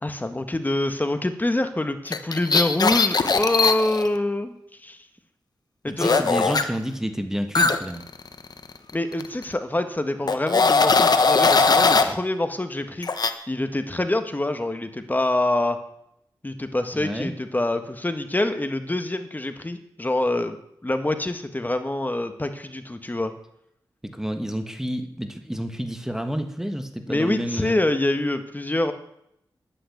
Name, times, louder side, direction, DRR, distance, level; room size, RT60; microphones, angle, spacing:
voice 1, 0.0-4.5 4.8-5.0 5.8-6.2 8.9-13.1 13.5-15.8 16.4-20.6 20.8-23.3 27.1-28.9, left 1 dB, 20° left, 8 dB, 1.5 m, -25 dB
sound 1, 2.1-4.1 6.0-6.6 7.5-8.9 9.2-9.4 10.3-12.1 13.0-13.3, left 4 dB, 55° left, 1.2 m, -19 dB
voice 2, 5.9-8.0 16.9-17.3 24.0-27.7, equal, 5° right, 6 dB, 1.6 m, -29 dB
11.0 x 10.5 x 8.6 m, 0.76 s
wide cardioid pair, 75°, 8 cm